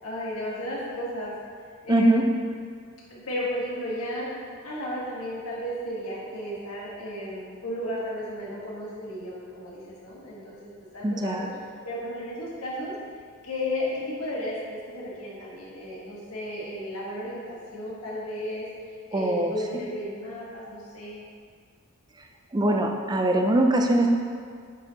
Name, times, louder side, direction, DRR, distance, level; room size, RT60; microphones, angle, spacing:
voice 1, 0.0-1.3 1.8-2.2 3.1-4.3 4.6-11.5 11.8-12.9 13.4-21.2, left 1 dB, 70° left, -5 dB, 1.5 m, -34 dB
voice 2, 1.9-2.2 11.0-11.5 19.1-19.5 22.5-24.1, right 1 dB, 20° right, 2 dB, 0.4 m, -22 dB
7.8 x 4.7 x 2.9 m, 2.1 s
head